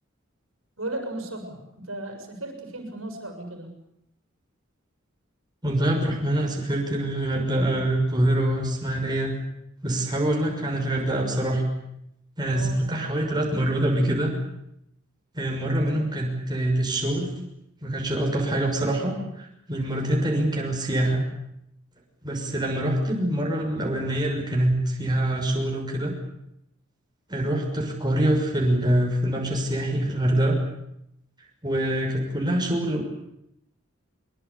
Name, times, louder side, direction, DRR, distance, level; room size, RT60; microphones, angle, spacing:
voice 1, 0.8-3.7 12.5-12.8, right 1 dB, 80° right, 5 dB, 6.7 m, -35 dB
voice 2, 5.6-9.4 9.8-11.6 12.4-14.3 15.3-17.4 17.8-21.2 22.2-26.1 27.3-30.6 31.6-33.0, right 1 dB, 20° right, 0 dB, 6.4 m, -25 dB
24.5 x 23.5 x 8.6 m, 0.79 s
head